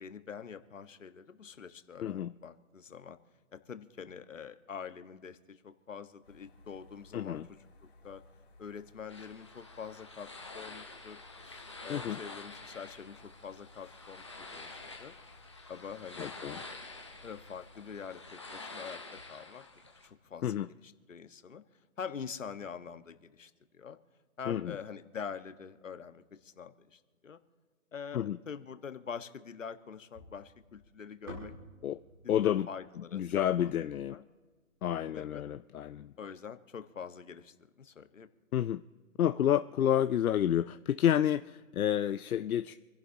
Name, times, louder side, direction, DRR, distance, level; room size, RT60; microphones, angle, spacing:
voice 1, 0.0-3.2 3.5-7.6 8.0-8.2 8.6-11.2 11.8-15.1 15.7-16.3 17.2-19.0 19.3-19.6 20.0-21.6 22.0-24.0 24.4-27.4 27.9-31.5 32.2-33.7 34.1-34.2 35.1-35.4 36.2-38.3, left 6 dB, 65° left, 9 dB, 1.3 m, -45 dB
voice 2, 2.0-2.3 7.1-7.5 11.9-12.2 16.2-16.6 20.4-20.7 24.5-24.8 28.1-28.4 31.8-32.0 32.3-32.7 33.0-34.2 34.8-36.1 38.5-38.8 39.2-42.7, left 10 dB, 80° left, 11 dB, 0.6 m, -30 dB
sound 1, 6.2-18.3, left 2 dB, 45° left, 3.3 m, -59 dB
sound 2, 9.1-20.1, left 3 dB, 20° left, 0.8 m, -48 dB
sound 3, 30.1-34.4, left 1 dB, 15° right, 2.0 m, -51 dB
28.0 x 11.5 x 2.7 m, 1.4 s
hypercardioid pair, 180°, 42 cm